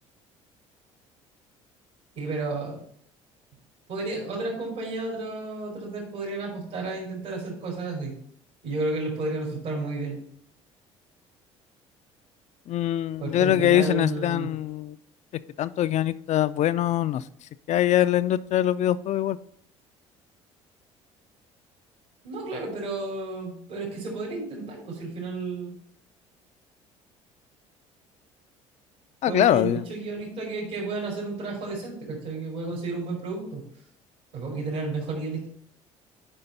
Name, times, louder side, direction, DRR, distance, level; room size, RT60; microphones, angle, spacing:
voice 1, 2.2-2.8 3.9-8.1 8.6-10.2 13.2-14.5 22.2-25.7 29.3-33.6 34.3-35.5, right 3 dB, 70° right, -3 dB, 3.0 m, -32 dB
voice 2, 12.7-15.0 15.6-17.2 17.7-19.4 29.2-29.8, left 12 dB, 50° left, 15 dB, 0.4 m, -23 dB
10.0 x 5.1 x 4.0 m, 0.64 s
hypercardioid pair, 60°, 15 cm